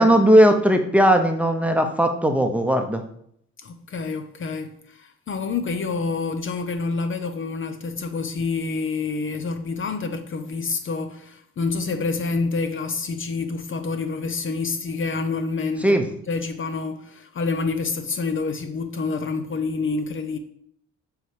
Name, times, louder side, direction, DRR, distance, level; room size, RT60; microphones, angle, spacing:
voice 1, 0.0-3.0 15.8-16.0, right 1 dB, 5° right, 0.8 m, -17 dB
voice 2, 3.6-20.4, left 4 dB, 45° left, 0.6 m, -28 dB
8.1 x 3.2 x 4.8 m
cardioid pair, 90°, 30 cm